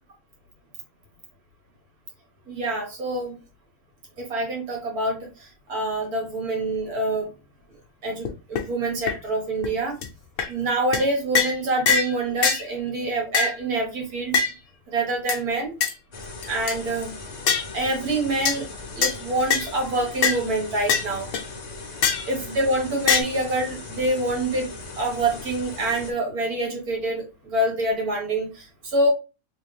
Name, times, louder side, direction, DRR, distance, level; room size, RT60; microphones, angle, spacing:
voice 1, 2.5-3.4 4.2-7.3 8.0-10.0 10.5-14.4 14.9-15.7 16.5-17.1 17.7-18.7 18.9-21.3 22.3-24.7 25.0-29.1, right 2 dB, 85° right, 0 dB, 2.1 m, -26 dB
sound 1, 8.2-8.3 8.5-8.6 9.1-9.2 9.6-9.7 10.0-10.1 10.4-10.5 10.9-11.1 11.3-11.6 11.9-12.1 12.4-12.6 13.3-13.6 14.3-14.5 15.3-15.4 15.8-15.9 16.4-16.8 17.5-17.7 18.4-18.6 19.0-19.1 19.5-19.7 20.2-20.4 20.9-21.1 21.3-21.4 22.0-22.3 23.1-23.2, left 5 dB, 65° left, 1.0 m, -22 dB
sound 2, 16.1-26.1, left 3 dB, 40° left, 0.6 m, -39 dB
3.3 x 3.3 x 3.3 m, 0.30 s
omnidirectional pair, 1.5 m